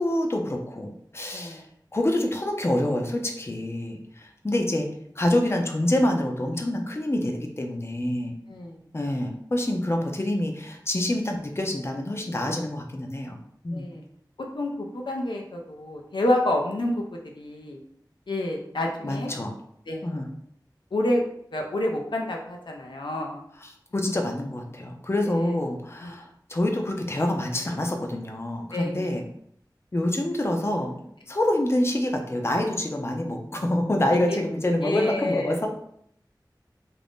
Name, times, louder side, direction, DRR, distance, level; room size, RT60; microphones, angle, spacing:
voice 1, 0.0-1.7 1.9-4.9 5.2-8.3 8.9-13.4 13.6-13.9 19.0-19.5 20.0-20.3 23.6-29.2 29.9-35.7, left 1 dB, 35° left, 3 dB, 0.5 m, -26 dB
voice 2, 1.3-1.6 8.5-8.8 13.7-14.0 14.5-17.8 18.3-19.3 19.9-20.1 20.9-21.2 21.5-23.4 25.2-25.5 26.0-26.1 28.7-29.2 34.3-34.4 34.8-35.5, left 1 dB, 85° left, 0 dB, 0.5 m, -29 dB
2.5 x 2.5 x 3.5 m, 0.69 s
wide cardioid pair, 50°, 8 cm